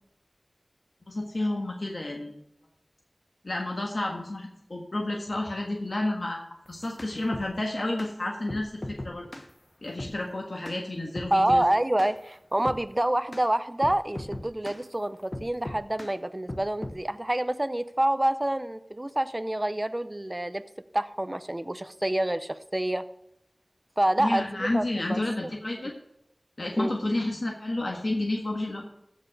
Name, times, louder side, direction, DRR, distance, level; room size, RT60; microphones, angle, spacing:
voice 1, 1.1-2.3 3.4-6.4 6.7-9.3 9.8-11.6 24.2-25.9 26.6-29.0, left 2 dB, 65° left, 0 dB, 1.5 m, -30 dB
sound 1, 6.7-7.5 8.0-8.1 8.5-9.5 10.0-10.2 10.6-10.8 11.1-11.7 12.0-12.2 12.6-12.8 13.3-13.5 13.8-14.8 15.3-16.1 16.5-17.0, left 1 dB, 40° left, 1.1 m, -38 dB
voice 2, 11.3-20.6 20.9-23.0 24.0-25.2 26.8-26.9, right 1 dB, 25° right, 12 dB, 0.6 m, -27 dB
15.5 x 5.4 x 4.8 m, 0.81 s
wide cardioid pair, 50°, 0 cm